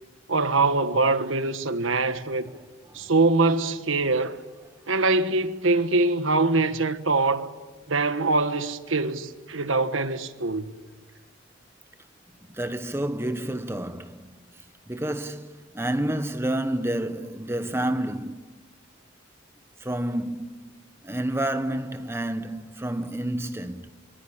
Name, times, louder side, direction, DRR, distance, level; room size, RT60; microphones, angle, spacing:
voice 1, 0.3-2.5 2.9-4.4 4.9-7.5 7.9-10.7, right 3 dB, 90° right, 1.4 m, -23 dB
voice 2, 12.5-14.3 14.9-18.5 19.8-20.7 21.0-23.9, right 1 dB, 10° right, 1.0 m, -29 dB
26.0 x 23.0 x 8.7 m
head